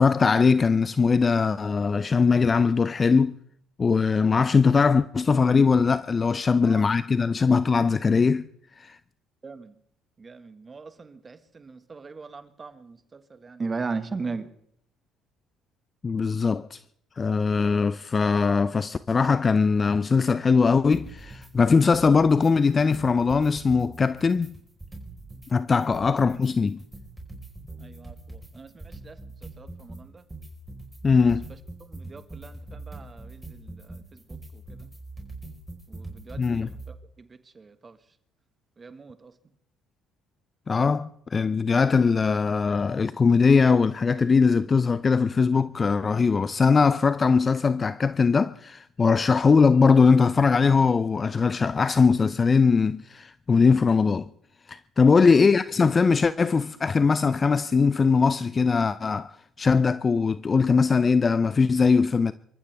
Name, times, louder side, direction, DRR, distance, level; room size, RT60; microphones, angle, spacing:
voice 1, 0.0-3.4 3.8-8.5 8.8-9.0 16.0-16.8 17.2-24.5 25.5-26.8 31.0-31.5 36.4-36.7 40.7-54.3 54.7-59.3 59.6-62.3, left 5 dB, 35° left, 0.5 m, -21 dB
voice 2, 9.4-9.7 10.2-14.5 27.8-29.2 29.6-30.2 31.8-34.0 34.5-34.6 35.9-36.7 37.2-37.3 37.5-38.0 38.8-39.3, right 4 dB, 30° right, 1.6 m, -38 dB
sound 1, 20.9-21.5 21.8-22.5 22.8-25.5 25.8-36.9, right 2 dB, 10° right, 4.6 m, -42 dB
27.0 x 14.5 x 3.5 m
supercardioid pair, 70°, 0 cm